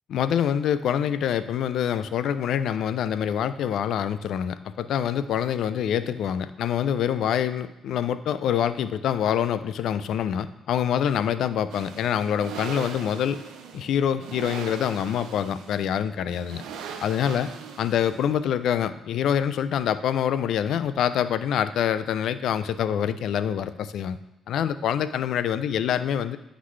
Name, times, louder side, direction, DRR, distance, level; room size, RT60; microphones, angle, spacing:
voice 1, 0.1-13.4 13.7-16.6 17.0-17.5 17.8-24.2 24.5-26.4, left 9 dB, 75° left, 13 dB, 0.3 m, -25 dB
sound 1, 11.7-18.5, right 6 dB, 85° right, 0.6 m, -40 dB
9.4 x 4.0 x 3.1 m, 0.95 s
cardioid pair, 90°, 0 cm